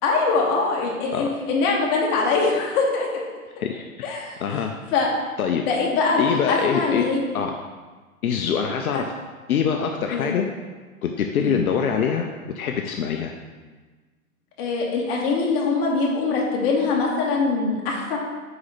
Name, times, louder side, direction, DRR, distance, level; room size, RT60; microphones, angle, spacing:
voice 1, 0.0-3.1 3.6-3.7 4.0-4.4 4.9-5.1 5.7-7.2 8.9-9.0 10.1-10.3 11.4-11.6 14.6-18.2, left 4 dB, 40° left, -2 dB, 1.6 m, -23 dB
voice 2, 3.6-4.7 5.4-5.6 6.2-7.1 7.3-7.5 8.2-9.0 9.5-10.5 11.0-12.3 12.6-13.3, left 7 dB, 80° left, 3 dB, 0.7 m, -24 dB
5.1 x 4.8 x 4.2 m, 1.4 s
hypercardioid pair, 125°, 43 cm